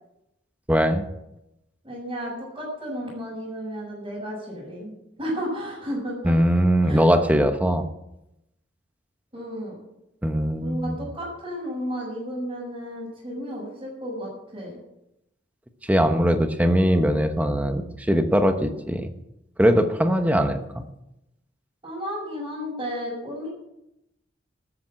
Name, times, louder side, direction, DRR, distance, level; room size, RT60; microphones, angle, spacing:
voice 1, 0.7-1.1 6.2-7.9 10.2-11.0 15.9-19.1 19.6-20.8, equal, 10° right, 7 dB, 1.0 m, -21 dB
voice 2, 1.8-4.9 5.2-6.3 6.8-7.0 9.3-9.8 10.6-14.7 21.8-23.5, equal, 25° right, -8 dB, 6.3 m, -33 dB
12.5 x 10.5 x 7.6 m, 0.87 s
head